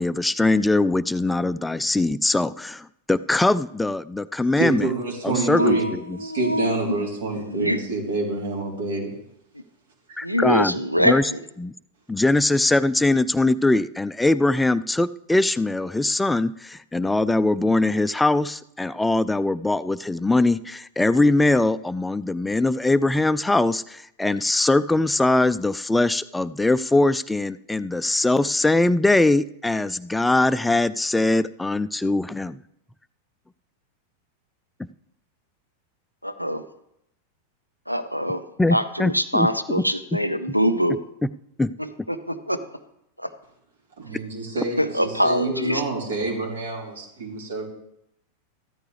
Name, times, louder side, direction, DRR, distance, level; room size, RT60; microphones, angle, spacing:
voice 1, 0.0-4.9 5.2-6.2 10.2-11.3 11.6-11.7 12.1-32.6 38.6-39.5 39.8-39.9 41.6-41.7, left 2 dB, 5° left, 16 dB, 0.4 m, -21 dB
voice 2, 4.6-5.9 6.2-9.1 44.0-47.7, right 2 dB, 65° right, -2 dB, 3.6 m, -27 dB
voice 3, 5.5-6.8 7.3-7.8 10.2-11.4 36.2-36.6 37.9-38.4 38.7-41.0 41.8-42.6 43.2-43.3 44.8-45.8, equal, 90° right, 11 dB, 0.9 m, -24 dB
14.5 x 13.0 x 3.4 m, 0.78 s
figure-of-eight pair, 90°, 0 cm